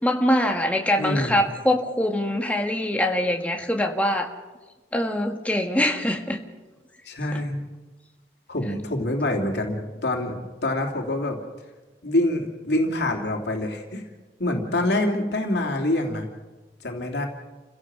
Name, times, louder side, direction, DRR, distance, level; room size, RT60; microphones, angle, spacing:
voice 1, 0.0-4.3 4.9-6.4, left 1 dB, 10° left, 2 dB, 1.8 m, -23 dB
voice 2, 1.0-1.4 7.0-7.6 8.5-10.4 10.6-11.4 12.0-14.0 14.4-16.3 16.8-17.3, left 1 dB, 75° left, 1 dB, 3.1 m, -25 dB
29.5 x 16.5 x 6.2 m, 1.2 s
head